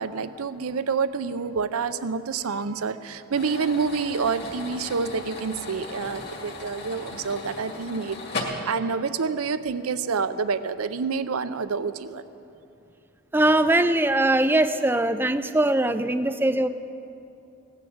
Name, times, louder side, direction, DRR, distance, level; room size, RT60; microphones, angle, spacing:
voice 1, 0.0-12.2, right 5 dB, 90° right, 13 dB, 0.6 m, -28 dB
sound 1, 3.3-8.4, left 3 dB, 50° left, 2.1 m, -37 dB
voice 2, 13.3-16.7, right 1 dB, 10° right, 11 dB, 0.4 m, -21 dB
17.0 x 9.9 x 7.8 m, 2.7 s
head